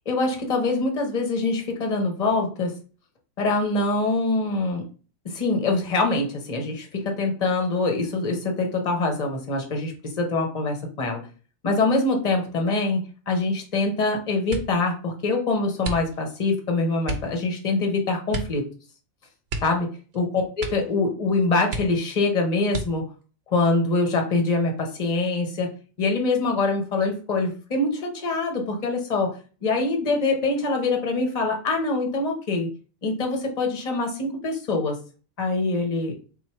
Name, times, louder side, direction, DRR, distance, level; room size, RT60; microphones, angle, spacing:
voice 1, 0.1-2.7 3.4-4.8 5.2-11.2 11.6-13.0 13.3-18.7 19.6-19.9 20.1-23.0 23.5-25.7 26.0-29.3 29.6-32.7 33.0-35.0 35.4-36.1, left 3 dB, 35° left, 2 dB, 0.6 m, -24 dB
sound 1, 14.5-14.9 15.8-16.4 17.0-17.4 18.3-18.6 18.9-19.0 19.4-20.2 20.5-21.0 21.3-21.4 21.7-22.2 22.7-23.2 23.9-24.6 24.9-25.3, right 3 dB, 60° right, 0.7 m, -33 dB
3.6 x 2.4 x 4.3 m, 0.38 s
omnidirectional pair, 1.8 m